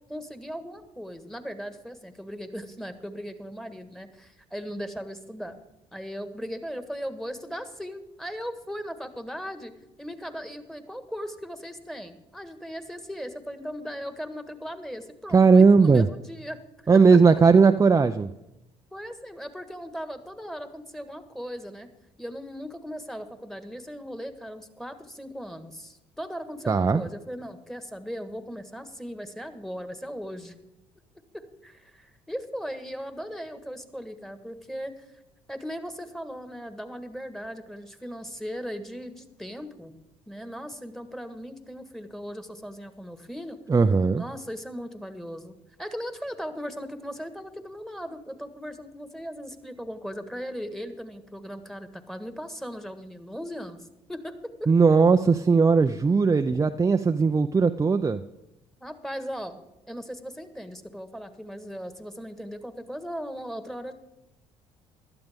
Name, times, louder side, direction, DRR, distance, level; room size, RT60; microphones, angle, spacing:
voice 1, 0.1-5.6 5.9-9.7 10.0-16.6 18.9-21.9 22.2-30.6 31.3-35.2 35.5-39.9 40.3-43.6 44.1-53.8 54.1-54.7 58.8-59.6 59.9-63.9, equal, 5° left, 9 dB, 1.6 m, -38 dB
voice 2, 15.3-16.1 16.9-18.3 26.7-27.0 43.7-44.2 54.7-58.2, right 4 dB, 20° right, 7 dB, 0.5 m, -18 dB
16.0 x 12.0 x 3.6 m, 0.93 s
hypercardioid pair, 60°, 14 cm